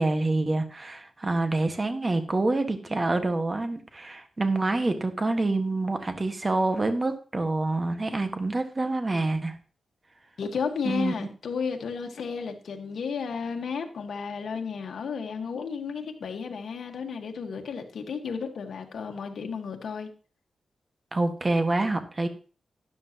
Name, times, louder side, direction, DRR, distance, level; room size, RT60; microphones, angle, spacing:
voice 1, 0.0-9.6 10.8-11.1 21.1-22.3, right 2 dB, 30° right, 1.6 m, -27 dB
voice 2, 10.4-20.1, left 5 dB, 75° left, 1.5 m, -33 dB
12.5 x 10.5 x 3.0 m
wide cardioid pair, 95°, 0 cm